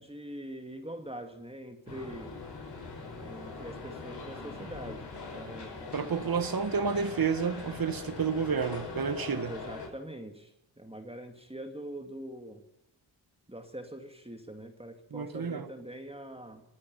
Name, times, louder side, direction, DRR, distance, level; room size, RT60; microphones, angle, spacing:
voice 1, 0.0-2.4 3.2-5.0 5.4-5.8 9.5-12.6 13.5-16.6, right 1 dB, 10° right, 2.2 m, -43 dB
sound 1, 1.9-9.9, left 4 dB, 55° left, 5.7 m, -42 dB
voice 2, 5.9-9.5 15.1-15.7, right 6 dB, 45° right, 1.7 m, -30 dB
25.5 x 9.6 x 5.4 m
supercardioid pair, 50°, 49 cm